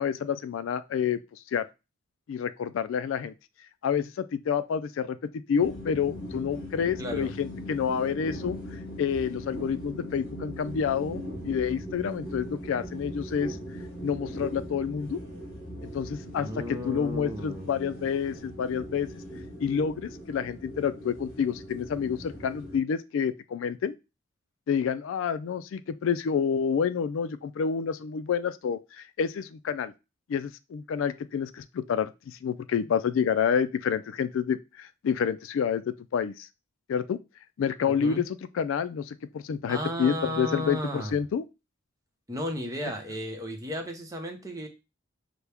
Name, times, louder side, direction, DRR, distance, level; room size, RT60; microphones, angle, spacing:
voice 1, 0.0-1.7 2.3-3.3 3.8-5.2 5.5-13.6 14.0-15.2 15.9-19.1 19.6-23.9 24.7-29.9 30.3-36.5 36.9-37.2 37.6-41.4, left 7 dB, 70° left, 0.3 m, -28 dB
sound 1, 5.6-22.8, equal, 50° left, 2.1 m, -40 dB
voice 2, 7.0-7.3 16.4-17.8 37.9-38.3 39.7-41.2 42.3-44.7, equal, 15° right, 0.8 m, -34 dB
5.8 x 2.1 x 3.4 m
head